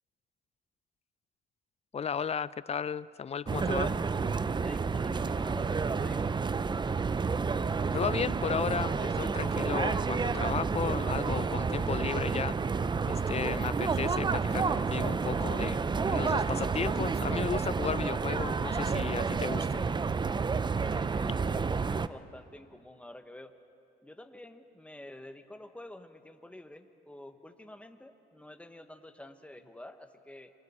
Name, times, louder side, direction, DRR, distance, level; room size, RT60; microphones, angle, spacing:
voice 1, 1.9-3.9 7.9-12.6 13.1-15.8 16.1-19.8, left 7 dB, 30° left, 19 dB, 0.4 m, -34 dB
sound 1, 3.5-22.1, right 5 dB, 20° right, 0.5 m, -30 dB
voice 2, 4.6-6.3 20.8-23.5 24.0-30.5, left 1 dB, 5° left, 8 dB, 1.2 m, -49 dB
27.0 x 23.5 x 4.3 m, 2.5 s
cardioid pair, 90°, 20 cm